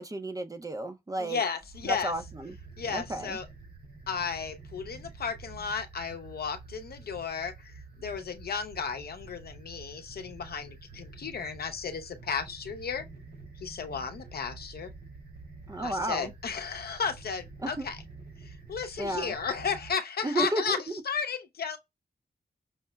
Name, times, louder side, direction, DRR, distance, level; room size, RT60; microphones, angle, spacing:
voice 1, 0.0-1.4 1.8-2.6 2.9-3.4 15.7-16.3 17.6-17.9 19.0-19.3 20.2-20.8, right 1 dB, 20° right, 0.5 m, -32 dB
voice 2, 1.2-2.1 2.8-3.5 4.1-7.7 8.0-13.0 13.6-14.9 15.8-18.0 18.4-20.8 21.0-21.8, left 6 dB, 70° left, 0.6 m, -34 dB
heavy)windthroughcarwindow, 1.6-19.9, right 3 dB, 85° right, 2.4 m, -48 dB
5.6 x 2.0 x 2.2 m
wide cardioid pair, 120°, 17 cm